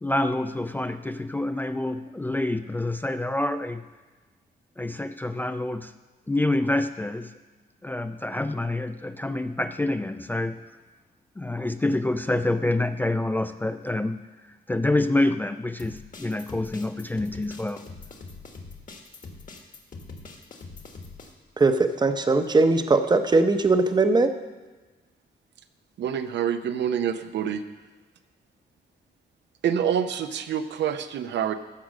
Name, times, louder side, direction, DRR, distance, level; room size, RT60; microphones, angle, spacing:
voice 1, 0.0-3.9 4.8-5.9 6.3-7.3 7.8-10.6 11.4-14.2 14.4-17.9, left 2 dB, 10° left, 9 dB, 0.3 m, -27 dB
sound 1, 15.8-21.3, left 3 dB, 45° left, 1.4 m, -43 dB
voice 2, 21.6-24.3, right 3 dB, 25° right, 8 dB, 0.7 m, -20 dB
voice 3, 26.0-27.6 29.6-31.5, right 8 dB, 80° right, 9 dB, 0.7 m, -26 dB
14.0 x 5.0 x 6.3 m, 1.3 s
cardioid pair, 115°, 18 cm